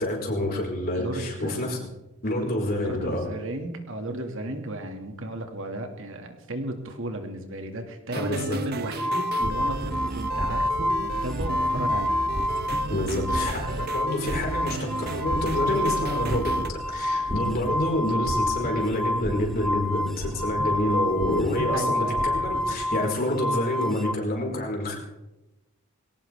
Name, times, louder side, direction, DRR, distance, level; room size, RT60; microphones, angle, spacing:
voice 1, 0.0-1.8 2.2-3.3 8.1-8.6 12.9-24.9, left 1 dB, 45° left, 0 dB, 4.8 m, -28 dB
voice 2, 0.9-1.9 2.8-12.2 21.7-22.3, right 1 dB, 60° right, 5 dB, 2.1 m, -34 dB
sound 1, 8.1-16.7, right 3 dB, 45° right, 0.9 m, -34 dB
sound 2, 8.9-12.9 13.2-24.1, left 1 dB, ahead, 0.4 m, -28 dB
sound 3, 9.4-23.0, equal, 20° right, 2.8 m, -36 dB
21.0 x 18.0 x 3.5 m, 0.97 s
head